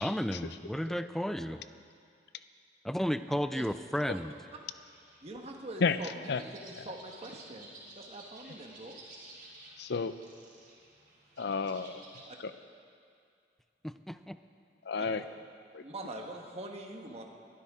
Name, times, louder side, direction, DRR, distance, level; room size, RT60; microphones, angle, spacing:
voice 1, 0.0-1.6 2.8-4.4 13.8-14.4, equal, ahead, 11 dB, 0.4 m, -33 dB
voice 2, 3.5-4.2 5.2-9.0 12.3-12.4 15.0-15.1 15.8-17.2, right 1 dB, 35° right, 1 dB, 1.3 m, -44 dB
sound 1, 4.1-12.2, right 2 dB, 50° right, 3.7 m, -54 dB
voice 3, 9.8-10.2 11.4-12.0 12.4-12.5 14.9-15.2 15.7-15.8, left 5 dB, 65° left, 12 dB, 0.6 m, -31 dB
22.0 x 12.5 x 3.7 m, 2.4 s
head